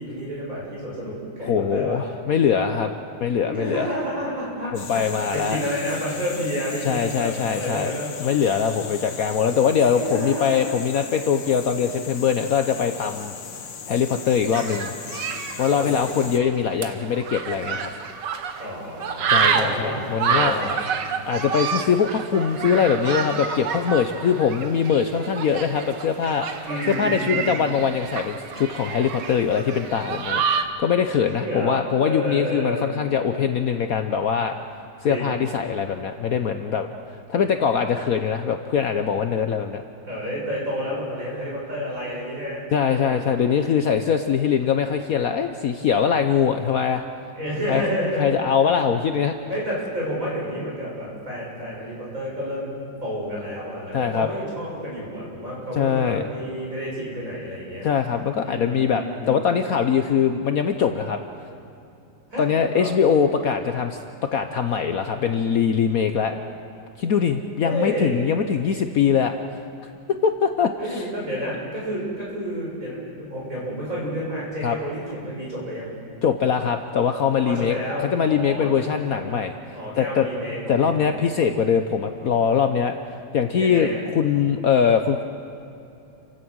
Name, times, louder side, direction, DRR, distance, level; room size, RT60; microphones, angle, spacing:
voice 1, 0.0-2.0 3.5-8.1 9.9-10.6 15.7-16.5 18.6-20.7 26.6-27.6 31.3-32.9 35.1-35.4 40.1-43.3 47.4-48.3 49.5-52.7 53.0-57.9 58.4-59.4 62.3-62.9 67.6-68.1 70.8-75.9 77.4-79.4 79.7-81.2 83.6-84.0, equal, 45° right, -5 dB, 7.5 m, -30 dB
voice 2, 1.4-2.9 3.2-3.9 4.7-5.6 6.8-7.9 8.2-13.3 13.9-14.9 15.6-17.9 19.3-20.5 21.3-34.5 35.0-36.9 37.3-39.8 42.7-47.0 47.7-47.8 48.2-49.3 53.9-54.3 55.8-56.2 57.8-61.2 62.4-64.0 64.3-66.4 67.0-69.3 69.8-71.0 74.6-74.8 76.2-77.8 78.1-80.3 80.7-85.2, left 7 dB, 60° left, 7 dB, 1.1 m, -22 dB
sound 1, 4.7-16.4, left 6 dB, 80° left, 1.9 m, -38 dB
sound 2, 14.5-18.7 19.0-30.6, right 6 dB, 70° right, 1.8 m, -28 dB
30.0 x 16.0 x 6.3 m, 2.7 s
omnidirectional pair, 2.0 m